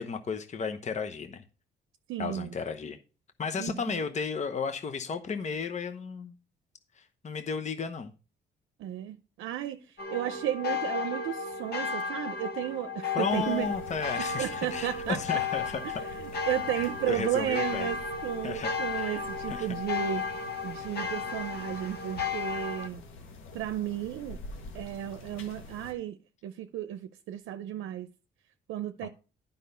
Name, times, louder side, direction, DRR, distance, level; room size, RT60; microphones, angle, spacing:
voice 1, 0.0-1.4 2.2-3.0 3.4-6.3 7.0-8.1 13.1-16.0 16.7-17.9 18.4-19.7 29.0-29.1, left 5 dB, 35° left, 0.9 m, -34 dB
voice 2, 2.1-2.5 3.6-4.0 8.8-13.7 14.2-15.4 15.8-20.3 20.6-23.0 23.5-24.4 24.7-26.2 26.4-28.1 28.7-29.1, right 12 dB, 85° right, 0.6 m, -34 dB
sound 1, 10.0-22.9, left 5 dB, 55° left, 1.7 m, -34 dB
sound 2, 13.3-25.9, left 2 dB, 85° left, 1.6 m, -47 dB
10.0 x 5.4 x 5.6 m
cardioid pair, 90°, 20 cm